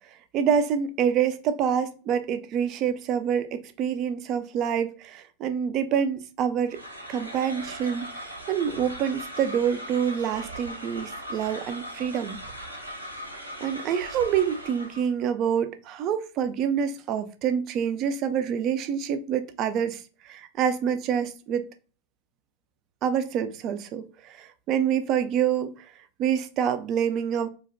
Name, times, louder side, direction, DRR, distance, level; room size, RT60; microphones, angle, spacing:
voice 1, 0.3-6.8 7.1-12.4 13.6-21.6 23.0-25.9 26.2-27.5, right 8 dB, 35° right, 0.3 m, -27 dB
sound 1, 6.7-15.1, equal, 90° right, 0.6 m, -39 dB
2.5 x 2.0 x 2.6 m
figure-of-eight pair, 90°, 0 cm